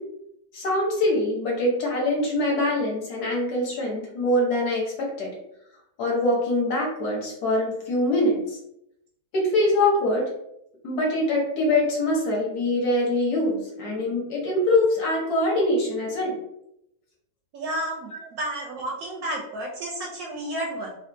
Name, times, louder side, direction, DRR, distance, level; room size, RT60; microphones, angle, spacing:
voice 1, 0.5-5.3 6.0-8.6 9.3-10.3 10.8-16.4, left 1 dB, 65° left, -3 dB, 1.4 m, -24 dB
voice 2, 17.5-21.0, right 1 dB, 70° right, -1 dB, 0.9 m, -31 dB
3.5 x 2.4 x 2.5 m, 0.80 s
omnidirectional pair, 1.9 m